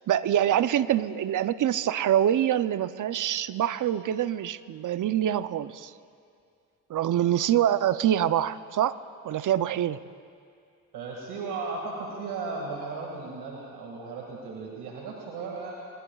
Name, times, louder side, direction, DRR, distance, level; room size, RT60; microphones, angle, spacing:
voice 1, 0.1-5.9 6.9-9.0 9.2-10.0, right 11 dB, 55° right, 14 dB, 0.6 m, -25 dB
voice 2, 10.9-15.7, right 4 dB, 80° right, -2 dB, 2.1 m, -36 dB
25.0 x 22.5 x 2.4 m, 2.3 s
supercardioid pair, 60°, 38 cm